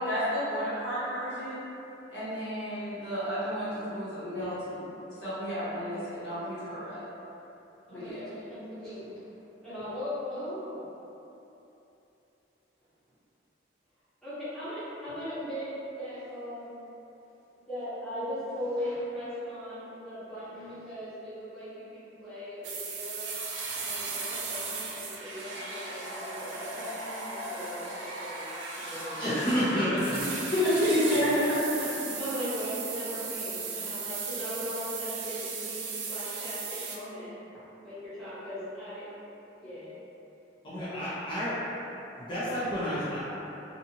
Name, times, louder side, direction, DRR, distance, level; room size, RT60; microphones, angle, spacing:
voice 1, 0.0-1.6 2.1-4.9 5.2-7.0 7.9-8.3 30.2-31.9, equal, 65° left, -13 dB, 1.2 m, -30 dB
voice 2, 7.9-9.1 9.6-10.8 14.2-16.7 17.7-23.3 23.8-28.4 28.8-30.1 32.2-37.3 37.8-39.1 39.6-40.0, equal, ahead, -16 dB, 1.0 m, -38 dB
sound 1, 22.6-37.0, right 4 dB, 80° right, 0.4 m, -37 dB
voice 3, 29.2-30.2 40.6-41.5 42.2-43.2, equal, 25° left, -12 dB, 0.5 m, -29 dB
2.7 x 2.3 x 2.7 m, 3.0 s
head